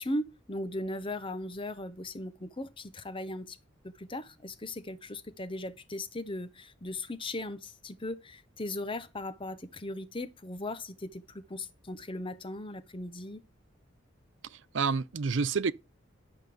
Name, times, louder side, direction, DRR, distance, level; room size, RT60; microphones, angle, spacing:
voice 1, 0.0-3.6 3.8-13.4, left 1 dB, 25° left, 0.9 m, -38 dB
voice 2, 14.4-15.7, right 5 dB, 65° right, 0.6 m, -29 dB
11.5 x 5.2 x 7.6 m
head